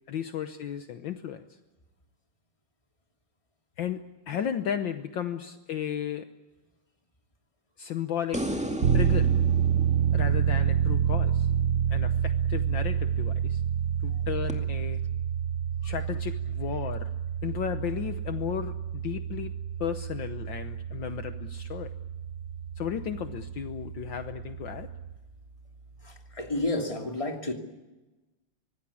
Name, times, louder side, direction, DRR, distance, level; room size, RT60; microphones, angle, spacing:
voice 1, 0.1-1.4 3.8-6.3 7.8-8.7 8.9-9.3 10.1-11.5 11.9-13.6 14.0-15.0 15.8-17.1 17.4-19.5 19.8-21.9 22.8-24.9, left 9 dB, 65° left, 8 dB, 1.6 m, -34 dB
sound 1, 8.3-11.7 14.5-14.6, equal, 5° right, 2.0 m, -35 dB
sound 2, 8.8-25.2, right 9 dB, 50° right, 0.8 m, -28 dB
voice 2, 26.0-27.5, left 2 dB, 15° left, 3 dB, 2.7 m, -31 dB
25.0 x 19.5 x 8.6 m, 1.1 s
omnidirectional pair, 2.3 m